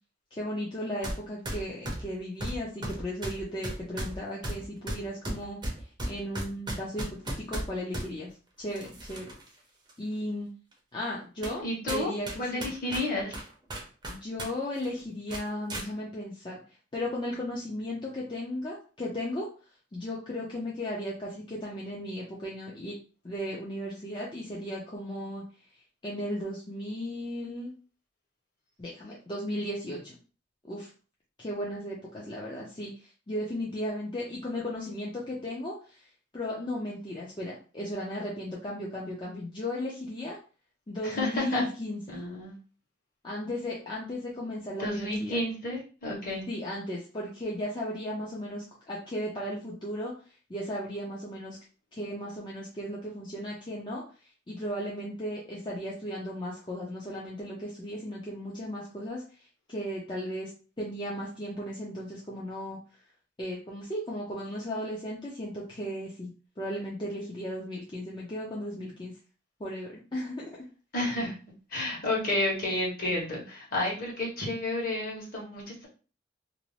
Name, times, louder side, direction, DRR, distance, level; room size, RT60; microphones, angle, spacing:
voice 1, 0.3-5.6 6.1-8.3 8.6-9.3 10.0-10.5 10.9-12.7 14.1-16.6 16.9-19.5 19.9-22.9 23.2-25.4 26.0-27.7 28.8-30.2 30.6-30.9 31.4-32.9 33.3-36.1 36.3-40.4 40.9-42.2 43.2-45.4 46.5-50.1 50.5-51.6 51.9-54.0 54.5-59.2 59.7-60.5 60.8-62.8 63.4-66.3 66.6-69.1 69.6-70.5, equal, 25° left, -5 dB, 0.5 m, -35 dB
sound 1, 1.0-1.2 1.5-8.1 8.7-9.5 9.9-10.0 10.7-10.8 11.4-11.6 11.9-14.5 14.8-14.9 15.3-15.9, right 1 dB, 25° right, 0.6 m, -35 dB
voice 2, 11.6-12.1 12.4-13.3 41.0-41.6 42.1-42.6 44.8-46.4 70.9-71.4 71.7-75.9, left 1 dB, 45° left, -3 dB, 1.1 m, -31 dB
2.6 x 2.0 x 3.1 m, 0.36 s
head